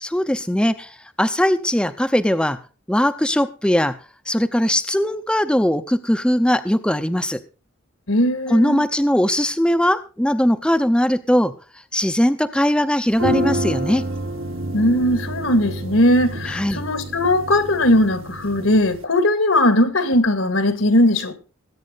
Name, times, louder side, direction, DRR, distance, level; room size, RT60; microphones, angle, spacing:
voice 1, 0.0-2.6 2.9-4.0 4.3-7.4 8.5-11.5 11.9-14.0 16.5-16.9, equal, 5° left, 0.6 m, -20 dB
voice 2, 8.1-8.8 14.7-21.4, left 1 dB, 80° left, 2.2 m, -18 dB
sound 1, 13.1-19.0, right 1 dB, 75° right, 1.8 m, -28 dB
20.5 x 9.0 x 4.0 m
head